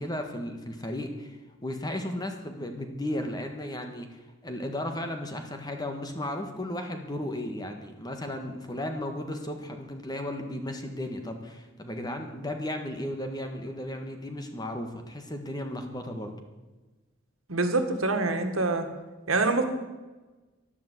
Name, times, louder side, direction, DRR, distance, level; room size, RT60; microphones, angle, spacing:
voice 1, 0.0-16.3, left 1 dB, 20° left, 5 dB, 1.6 m, -35 dB
voice 2, 17.5-18.9 19.3-19.6, right 3 dB, 80° right, 6 dB, 1.9 m, -25 dB
12.0 x 11.5 x 8.2 m, 1.2 s
head